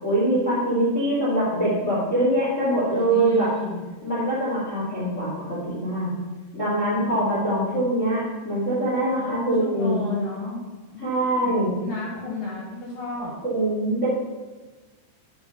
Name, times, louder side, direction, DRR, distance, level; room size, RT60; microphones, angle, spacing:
voice 1, 0.0-3.5 4.0-6.1 6.5-10.0 11.0-11.7 13.4-14.1, right 1 dB, 30° left, -10 dB, 1.4 m, -23 dB
voice 2, 2.9-3.9 7.0-7.2 9.1-10.6 10.9-11.5 11.8-13.3, left 3 dB, 85° left, -5 dB, 2.0 m, -33 dB
8.6 x 3.6 x 5.7 m, 1.3 s
omnidirectional pair, 5.6 m